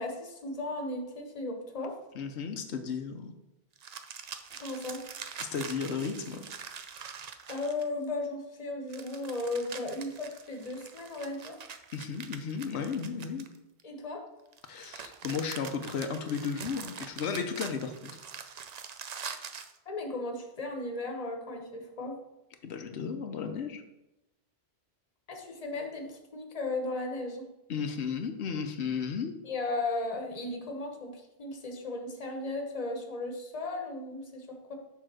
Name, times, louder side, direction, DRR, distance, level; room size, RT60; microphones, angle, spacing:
voice 1, 0.0-2.0 4.6-5.0 7.5-11.6 13.8-14.3 19.9-22.2 25.3-27.4 29.4-34.8, left 2 dB, 35° left, 3 dB, 1.1 m, -36 dB
voice 2, 2.1-3.3 5.4-6.5 11.9-13.5 14.7-18.1 22.6-23.8 27.7-29.4, left 6 dB, 90° left, 6 dB, 1.0 m, -34 dB
sound 1, 3.8-8.1 8.9-13.8 14.5-19.8, right 6 dB, 50° right, 0.5 m, -44 dB
6.8 x 3.7 x 6.1 m, 0.91 s
omnidirectional pair, 1.1 m